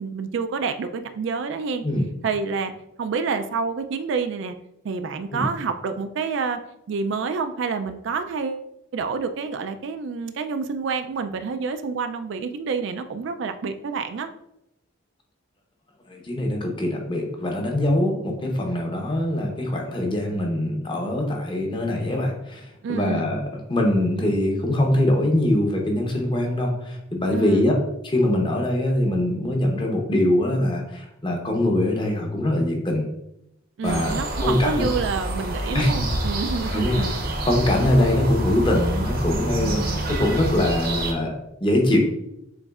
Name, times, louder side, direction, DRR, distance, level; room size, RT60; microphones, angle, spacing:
voice 1, 0.0-1.8 2.2-2.7 3.0-4.5 4.8-6.6 6.9-8.7 8.9-14.3 22.8-23.3 27.3-27.7 33.8-37.1 39.6-40.1, right 5 dB, 60° right, 8 dB, 0.3 m, -28 dB
voice 2, 16.1-27.8 28.0-33.1 33.8-34.1 34.4-34.9 35.7-36.0 36.7-37.1 37.4-42.0, left 1 dB, 25° left, 1 dB, 0.8 m, -23 dB
sound 1, 33.8-41.1, right 1 dB, 45° right, 0.7 m, -27 dB
6.9 x 3.1 x 2.4 m, 0.83 s
head